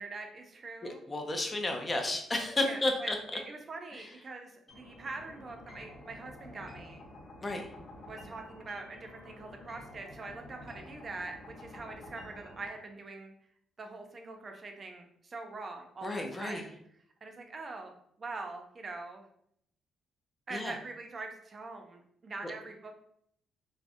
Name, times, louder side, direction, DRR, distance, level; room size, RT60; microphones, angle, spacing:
voice 1, 0.0-1.0 2.6-7.0 8.0-13.3 13.8-16.7 17.2-17.9 18.2-19.2 20.5-22.9, right 3 dB, 40° right, 4 dB, 0.4 m, -43 dB
voice 2, 0.8-3.4 3.9-4.1 7.4-7.7 16.0-16.6 20.5-20.7, left 2 dB, 25° left, 3 dB, 0.5 m, -32 dB
sound 1, 4.7-12.7, left 1 dB, 50° left, 1.0 m, -50 dB
2.3 x 2.0 x 2.6 m, 0.69 s
cardioid pair, 90°, 0 cm